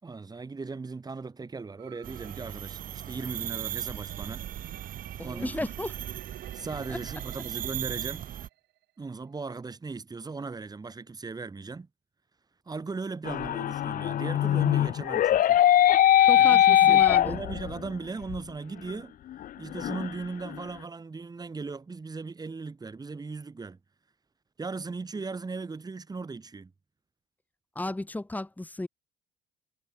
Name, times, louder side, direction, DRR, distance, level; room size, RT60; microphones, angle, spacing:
voice 1, 0.0-4.5 5.2-5.7 6.5-8.3 9.0-11.9 12.7-15.6 16.3-19.2 19.6-23.8 24.6-26.7, right 4 dB, 25° right, 7.7 m, -38 dB
sound 1, 1.8-8.8, right 17 dB, 80° right, 7.8 m, -50 dB
sound 2, 2.0-8.5, right 11 dB, 55° right, 1.5 m, -37 dB
voice 2, 5.2-5.9 6.9-7.0 16.3-17.4 27.7-28.9, left 2 dB, 10° left, 4.8 m, -34 dB
sound 3, 13.3-17.9 18.3-18.4 18.9-19.0 19.3-20.5, left 12 dB, 55° left, 0.9 m, -21 dB
cardioid pair, 110°, 17 cm